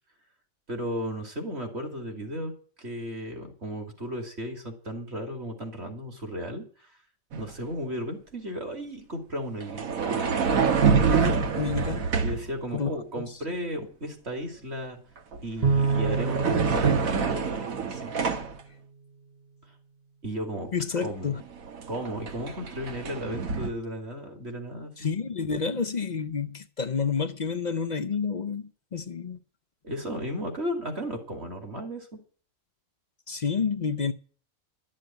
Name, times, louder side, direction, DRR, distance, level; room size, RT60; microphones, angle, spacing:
voice 1, 0.7-2.5 2.8-6.9 7.3-10.3 12.2-15.0 15.4-18.1 20.2-20.7 21.0-21.3 21.9-25.1 29.8-32.2, equal, 50° right, 3.1 m, -35 dB
sound 1, 7.3-7.5 9.6-12.5 15.2-15.4 15.7-18.6 21.0-21.1 21.4-23.7, right 5 dB, 80° right, 1.7 m, -26 dB
voice 2, 11.6-12.1 12.7-13.4 20.7-21.4 25.0-29.4 33.3-34.1, left 6 dB, 45° left, 0.6 m, -29 dB
Bowed string instrument, 15.6-18.3, right 5 dB, 30° right, 0.9 m, -28 dB
12.5 x 7.5 x 9.2 m
omnidirectional pair, 1.4 m